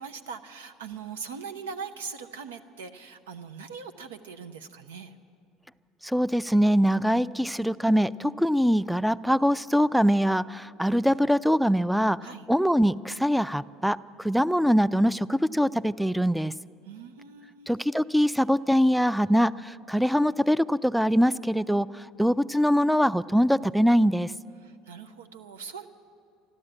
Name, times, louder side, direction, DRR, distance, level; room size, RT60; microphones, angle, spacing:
voice 1, 0.0-5.2 12.2-12.5 16.8-17.7 24.6-25.9, right 6 dB, 85° right, 8 dB, 0.8 m, -41 dB
voice 2, 6.0-12.2 12.5-16.5 17.7-24.3, equal, ahead, 17 dB, 0.4 m, -23 dB
13.0 x 12.5 x 8.8 m, 2.5 s
hypercardioid pair, 70°, 0 cm